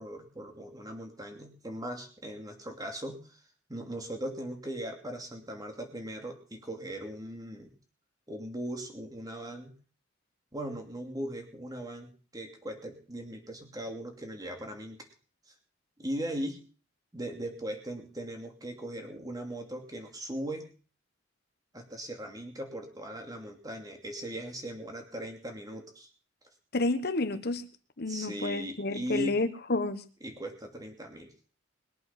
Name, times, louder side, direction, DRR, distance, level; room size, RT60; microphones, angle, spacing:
voice 1, 0.0-3.4 3.7-7.7 8.3-9.8 10.5-15.1 15.5-15.6 16.0-16.6 17.1-20.7 21.7-26.1 28.1-29.4 30.2-31.3, right 1 dB, 20° right, 4 dB, 2.7 m, -39 dB
voice 2, 26.7-27.6 28.0-30.0, left 2 dB, 55° left, 10 dB, 1.3 m, -30 dB
21.5 x 8.4 x 5.9 m, 0.40 s
head